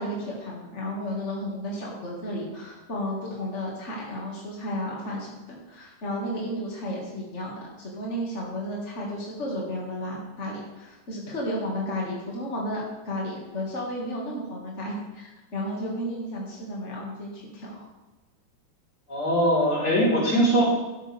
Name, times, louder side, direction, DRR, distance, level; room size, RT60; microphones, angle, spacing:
voice 1, 0.0-17.8, equal, 45° left, -3 dB, 0.9 m, -33 dB
voice 2, 19.1-20.6, equal, 20° left, -6 dB, 4.3 m, -21 dB
12.5 x 11.0 x 3.6 m, 1.1 s
omnidirectional pair, 5.0 m